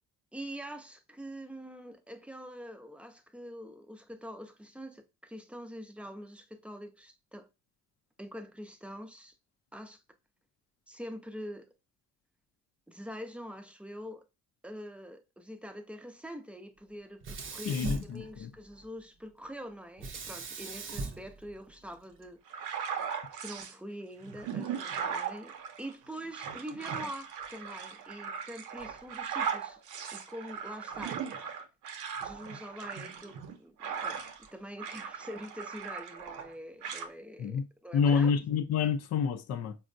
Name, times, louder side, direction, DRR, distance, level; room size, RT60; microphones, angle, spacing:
voice 1, 0.3-7.5 8.2-9.4 9.7-10.0 10.9-11.7 12.9-14.2 14.6-22.4 23.4-25.5 25.8-29.8 30.1-31.2 32.2-34.2 34.5-38.3, equal, 5° right, 0.5 m, -44 dB
Sink (filling or washing), 17.2-18.9 20.0-22.3, right 3 dB, 40° right, 0.6 m, -40 dB
voice 2, 17.7-18.5 37.4-37.7 37.9-39.8, left 6 dB, 55° left, 0.5 m, -28 dB
sound 1, 22.5-23.7 24.2-34.5 34.8-36.5 36.8-37.1, right 7 dB, 80° right, 0.6 m, -38 dB
4.4 x 2.1 x 2.5 m
cardioid pair, 90°, 30 cm